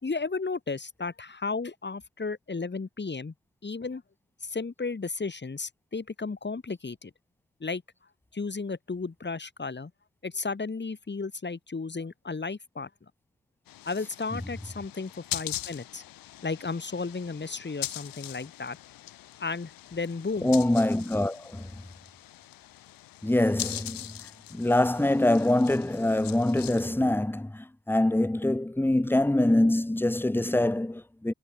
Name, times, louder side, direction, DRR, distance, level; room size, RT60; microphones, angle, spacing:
voice 1, 0.0-3.3 3.6-4.0 4.4-7.1 7.6-7.8 8.3-9.9 10.2-12.9 13.9-16.0 16.4-18.8 19.4-20.5, left 4 dB, 30° left, 3.7 m, -34 dB
sound 1, 13.7-26.9, left 14 dB, 90° left, 2.5 m, -41 dB
voice 2, 20.4-21.7 23.2-24.1 24.5-31.3, left 1 dB, 5° left, 1.1 m, -24 dB
supercardioid pair, 60°, 33 cm